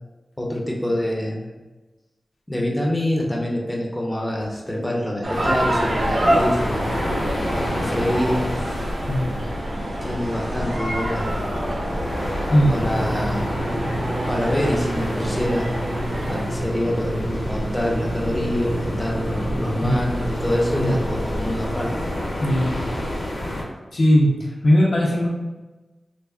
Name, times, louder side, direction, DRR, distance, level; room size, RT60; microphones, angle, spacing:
voice 1, 0.4-1.5 2.5-7.1 7.7-8.4 10.0-11.3 12.7-13.4 14.3-15.7 16.3-21.9, left 1 dB, 15° left, -2 dB, 0.6 m, -25 dB
sound 1, 5.2-16.4, right 1 dB, 65° right, 0.7 m, -27 dB
sound 2, 5.3-23.6, left 1 dB, 80° left, 1.0 m, -28 dB
voice 2, 9.1-9.4 12.5-12.8 19.8-20.0 20.8-21.0 22.4-22.8 23.3-23.6 23.9-25.3, equal, 65° left, -4 dB, 0.6 m, -19 dB
sound 3, 12.8-21.0, right 2 dB, 40° right, 1.5 m, -30 dB
3.4 x 2.0 x 2.4 m, 1.1 s
cardioid pair, 45°, 0 cm